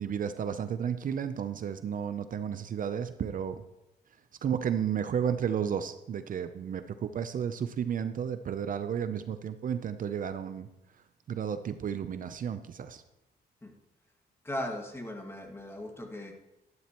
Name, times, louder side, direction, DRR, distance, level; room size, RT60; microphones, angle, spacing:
voice 1, 0.0-3.6 4.4-10.7 11.3-13.0, right 8 dB, 50° right, 11 dB, 0.6 m, -32 dB
voice 2, 14.4-16.3, left 1 dB, 15° left, 2 dB, 1.9 m, -38 dB
12.5 x 12.0 x 3.0 m, 0.90 s
cardioid pair, 105°, 17 cm